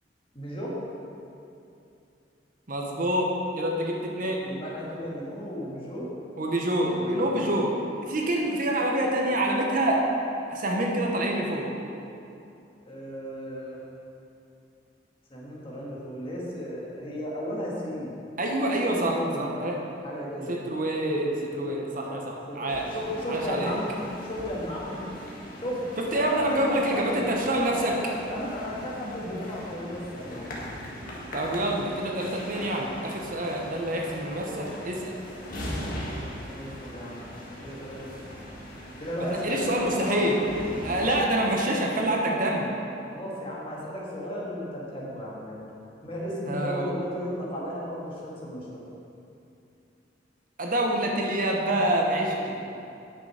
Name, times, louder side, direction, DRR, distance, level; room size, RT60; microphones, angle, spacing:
voice 1, 0.3-0.7 4.4-6.1 6.8-7.5 12.9-13.8 15.3-18.1 18.9-19.5 20.0-20.5 22.1-23.9 24.2-25.0 25.6-25.8 26.1-27.2 27.7-30.6 36.3-38.3 39.0-40.3 43.1-45.6 46.0-48.8, equal, 30° left, -5 dB, 1.9 m, -35 dB
voice 2, 2.7-4.4 6.4-7.7 8.0-10.0 10.5-11.7 18.4-19.8 20.5-22.9 23.3-23.7 26.0-27.9 31.3-35.2 39.2-40.4 40.8-42.7 46.5-46.9 50.6-52.6, right 1 dB, 50° right, 0 dB, 1.0 m, -26 dB
sound 1, 22.7-41.1, equal, 50° left, 1.6 m, -40 dB
9.1 x 6.7 x 5.0 m, 2.7 s
head